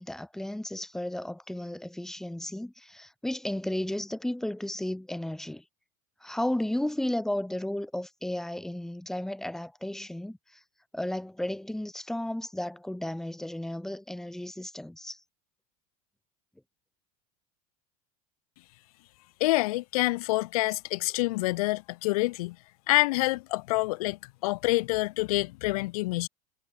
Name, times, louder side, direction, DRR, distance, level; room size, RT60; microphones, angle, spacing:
voice 1, 0.0-5.6 6.2-10.6 10.9-15.2, left 1 dB, ahead, 2.9 m, -34 dB
voice 2, 19.4-22.6 22.9-26.3, left 21 dB, 80° left, 0.6 m, -27 dB
supercardioid pair, 165°, 19 cm